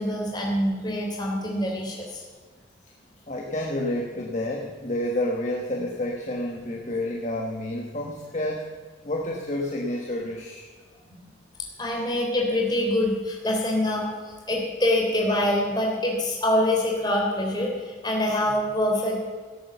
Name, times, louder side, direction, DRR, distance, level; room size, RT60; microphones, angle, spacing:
voice 1, 0.0-2.2 11.1-11.2 11.8-19.3, left 1 dB, 20° left, -1 dB, 3.4 m, -25 dB
voice 2, 3.3-8.7 9.0-10.7, left 1 dB, 40° left, -1 dB, 1.3 m, -29 dB
17.5 x 8.6 x 6.9 m, 1.5 s
head